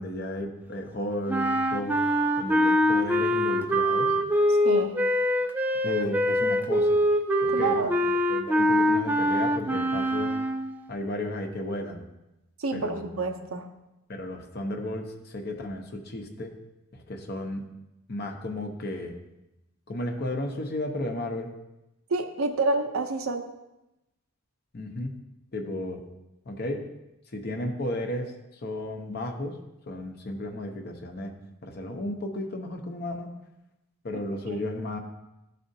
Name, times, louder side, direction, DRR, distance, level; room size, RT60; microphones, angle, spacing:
voice 1, 0.0-2.0 2.4-4.1 5.8-7.0 7.4-7.8 8.3-10.4 10.9-12.0 12.7-13.1 14.1-16.5 16.9-17.6 18.1-19.2 19.9-21.5 24.7-25.2 25.5-26.0 26.4-26.9 27.3-28.3 28.6-29.6 29.9-31.3 31.6-33.3 34.0-35.0, left 1 dB, 50° left, 2 dB, 0.8 m, -33 dB
sound 1, 1.3-10.8, equal, 10° right, 0.3 m, -24 dB
voice 2, 4.6-5.0 7.5-7.9 12.6-13.7 22.1-23.5 34.1-34.2 34.5-34.6, right 3 dB, 80° right, 5 dB, 0.7 m, -28 dB
12.5 x 4.2 x 2.7 m, 0.93 s
head